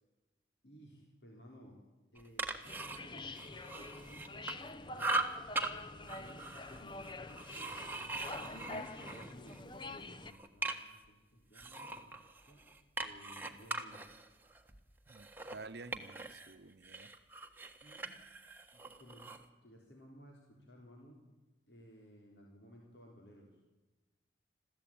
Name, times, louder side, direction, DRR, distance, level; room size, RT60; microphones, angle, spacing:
voice 1, 0.6-1.8 2.1-5.3 5.7-7.5 8.4-12.6 13.0-14.2 17.8-18.2 18.7-19.2 19.6-21.2 21.7-23.6, equal, 65° left, -1 dB, 3.6 m, -58 dB
sound 1, 2.2-4.7 5.0-5.7 6.1-9.6 10.0-11.1 11.5-16.5 16.8-19.4, right 2 dB, 10° right, 1.3 m, -41 dB
sound 2, 2.7-10.3, left 2 dB, 25° left, 0.8 m, -46 dB
voice 2, 8.1-8.4 15.1-17.1, right 3 dB, 60° right, 12 dB, 0.9 m, -51 dB
22.5 x 15.0 x 8.7 m, 1.2 s
head